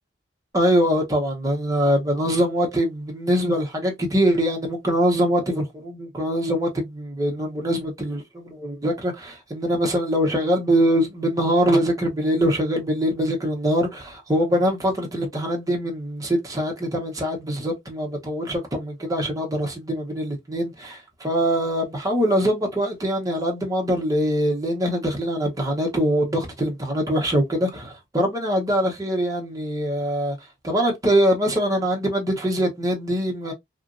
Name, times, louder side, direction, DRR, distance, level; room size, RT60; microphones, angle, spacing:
voice 1, 0.5-30.4 30.6-33.5, equal, 20° right, 0.9 m, -23 dB
2.9 x 2.5 x 2.5 m
head